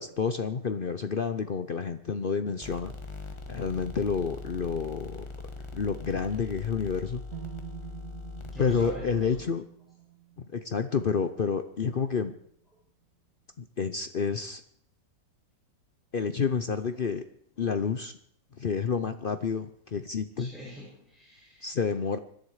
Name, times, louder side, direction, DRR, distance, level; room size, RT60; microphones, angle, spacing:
voice 1, 0.0-2.9 3.5-5.3 5.7-7.2 8.6-9.6 10.5-12.3 13.6-14.6 16.1-17.2 17.6-18.1 18.6-20.5 21.6-22.2, left 6 dB, 55° left, 10 dB, 0.6 m, -29 dB
sound 1, 2.6-9.4, left 3 dB, 15° left, 1.6 m, -41 dB
sound 2, 7.3-11.3, right 14 dB, 55° right, 1.7 m, -46 dB
voice 2, 8.5-9.3 20.4-21.7, left 1 dB, ahead, -8 dB, 7.8 m, -43 dB
25.0 x 11.0 x 4.9 m, 0.65 s
omnidirectional pair, 1.9 m